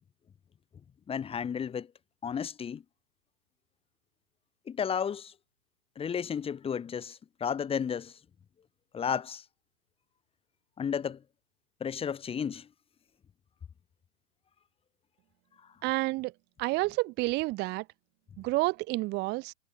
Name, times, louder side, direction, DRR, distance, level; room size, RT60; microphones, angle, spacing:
voice 1, 1.1-1.9 2.2-2.8 4.7-5.3 6.0-8.2 8.9-9.4 10.8-11.2 11.8-12.7, left 7 dB, 15° left, 1.4 m, -33 dB
voice 2, 15.8-16.3 16.6-17.8 18.4-19.5, right 22 dB, 25° right, 0.8 m, -29 dB
hypercardioid pair, 125°, 40 cm